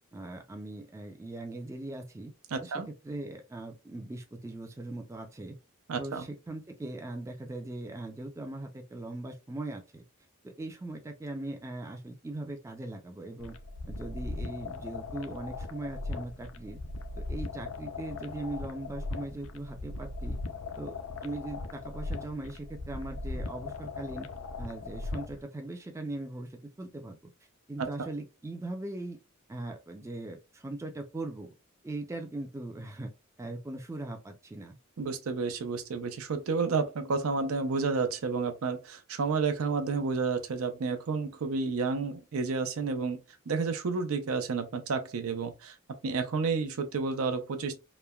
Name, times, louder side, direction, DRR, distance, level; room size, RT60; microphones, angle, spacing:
voice 1, 0.1-2.3 2.6-5.6 6.0-10.0 10.4-13.5 13.9-16.8 17.2-20.4 20.8-24.3 24.6-27.2 27.7-29.2 29.5-31.5 31.8-33.1 33.4-34.8, right 2 dB, 15° right, 0.3 m, -40 dB
voice 2, 2.5-2.9 5.9-6.3 35.0-43.2 43.5-45.7 46.0-47.8, right 4 dB, 80° right, 0.5 m, -30 dB
sound 1, 13.4-25.4, left 3 dB, 65° left, 0.4 m, -39 dB
3.0 x 2.1 x 2.3 m
head